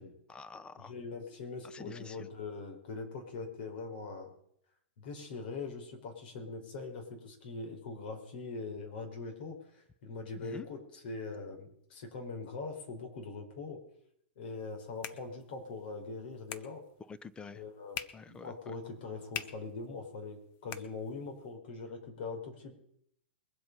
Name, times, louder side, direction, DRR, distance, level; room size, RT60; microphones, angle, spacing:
voice 1, 0.3-0.9 1.6-2.3 10.3-10.7 17.0-17.6 18.1-18.7, left 5 dB, 15° left, 14 dB, 0.9 m, -48 dB
voice 2, 0.9-4.3 5.0-10.8 11.0-13.8 14.4-16.8 17.5-22.7, left 4 dB, 60° left, 3 dB, 4.8 m, -42 dB
sound 1, 14.5-21.5, left 11 dB, 45° left, 1.1 m, -48 dB
22.5 x 7.9 x 5.5 m, 0.71 s
hypercardioid pair, 110°, 6 cm